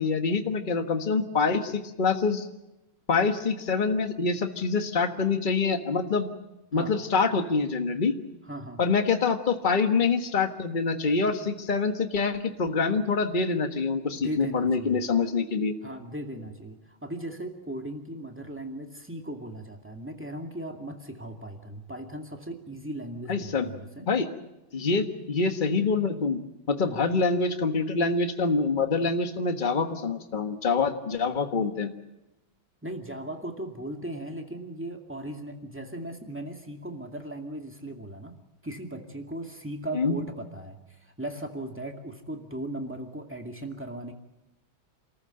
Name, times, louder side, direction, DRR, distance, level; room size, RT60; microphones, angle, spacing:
voice 1, 0.0-2.5 3.1-6.3 6.7-8.1 8.8-15.7 23.3-23.7 24.1-24.3 24.7-26.4 26.7-31.9 39.9-40.2, left 4 dB, 25° left, 6 dB, 1.4 m, -25 dB
voice 2, 8.5-8.8 14.1-15.0 15.8-24.1 26.8-27.0 32.8-38.3 38.6-44.1, right 1 dB, 5° right, 3 dB, 2.1 m, -37 dB
27.5 x 14.0 x 8.9 m, 0.95 s
omnidirectional pair, 2.3 m